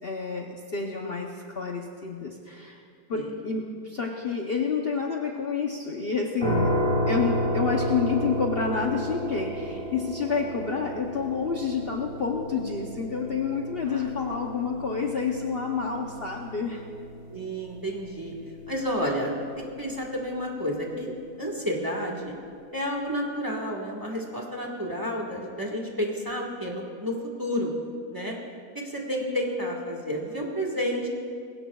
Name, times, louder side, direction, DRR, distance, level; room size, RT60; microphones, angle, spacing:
voice 1, 0.0-2.8 3.1-6.7 7.1-16.8, left 5 dB, 50° left, 1 dB, 0.9 m, -29 dB
sound 1, 6.4-19.3, equal, 35° right, 4.0 m, -32 dB
voice 2, 17.3-18.4 18.7-21.1 21.4-22.3 22.7-27.7 28.1-28.3 28.7-31.1, equal, 15° right, 0 dB, 1.4 m, -30 dB
20.0 x 17.0 x 2.3 m, 2.3 s
omnidirectional pair, 1.6 m